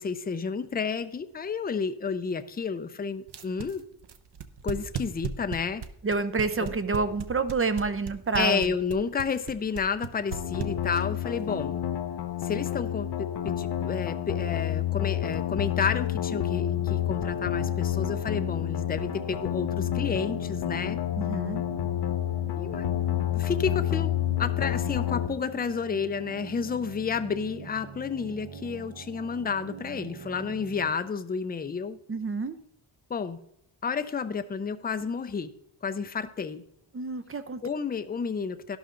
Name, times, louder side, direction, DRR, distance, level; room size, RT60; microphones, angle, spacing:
voice 1, 0.0-3.8 4.6-5.8 6.6-6.7 8.3-11.8 12.4-21.0 22.6-22.9 23.3-32.0 33.1-33.4 33.8-35.5 35.8-36.6 37.6-38.8, left 5 dB, 20° left, 10 dB, 0.4 m, -31 dB
sound 1, 3.3-11.2, right 8 dB, 55° right, 0.9 m, -35 dB
voice 2, 6.0-8.7 21.2-21.6 32.1-32.5 36.9-37.6, right 4 dB, 30° right, 11 dB, 0.6 m, -28 dB
sound 2, 10.3-25.3, left 12 dB, 55° left, 0.7 m, -29 dB
sound 3, 16.4-30.9, right 5 dB, 80° right, 1.1 m, -44 dB
12.0 x 11.5 x 3.8 m, 0.71 s
wide cardioid pair, 180°, 49 cm